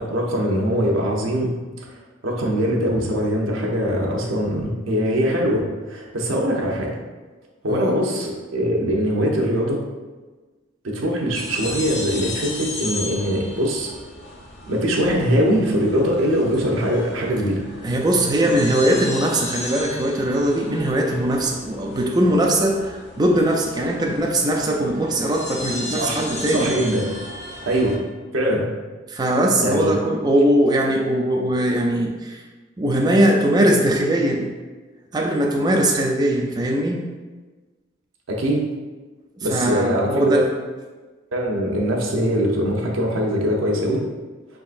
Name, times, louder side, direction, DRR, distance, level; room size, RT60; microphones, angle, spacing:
voice 1, 0.0-1.5 1.8-6.9 7.6-9.8 10.8-13.9 14.7-17.6 25.9-26.2 26.5-27.1 27.7-28.0 28.3-28.7 29.6-29.9 38.3-38.6 39.4-40.4 41.3-44.0, equal, 85° right, -1 dB, 0.8 m, -22 dB
voice 2, 7.7-8.0 17.8-26.7 29.1-32.4 32.8-34.5 35.1-37.0 39.4-40.5, right 1 dB, 20° right, 0 dB, 0.3 m, -20 dB
sound 1, 11.3-28.0, left 2 dB, 55° left, 0.8 m, -35 dB
4.8 x 3.7 x 2.5 m, 1.3 s
head